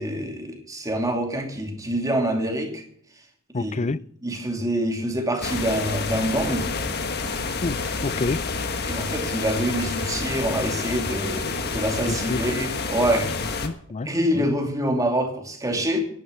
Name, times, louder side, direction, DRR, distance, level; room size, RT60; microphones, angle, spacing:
voice 1, 0.0-2.8 3.5-3.9 4.2-6.7 8.8-13.3 14.0-16.0, right 1 dB, 15° right, 2.6 m, -26 dB
voice 2, 3.5-4.0 7.6-8.4 12.1-12.4 13.6-14.1 14.3-14.5, left 3 dB, 30° left, 0.5 m, -28 dB
sound 1, 5.4-13.7, left 4 dB, 50° left, 1.5 m, -29 dB
11.0 x 11.0 x 6.9 m
head